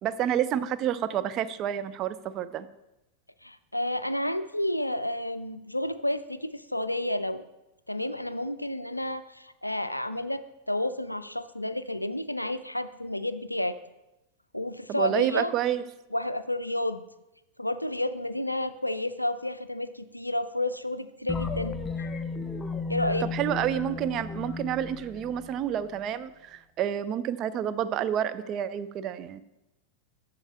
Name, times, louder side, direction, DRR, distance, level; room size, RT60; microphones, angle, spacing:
voice 1, 0.0-2.7 14.9-15.8 23.2-29.4, right 10 dB, 35° right, 13 dB, 0.4 m, -29 dB
voice 2, 3.4-7.4 7.9-13.8 14.5-15.5 16.1-17.0 17.6-21.8 22.9-23.3, left 1 dB, 85° left, 13 dB, 0.3 m, -31 dB
sound 1, 21.3-26.0, left 4 dB, 15° left, 0.5 m, -34 dB
8.0 x 6.8 x 4.2 m, 0.93 s
figure-of-eight pair, 90°, 0 cm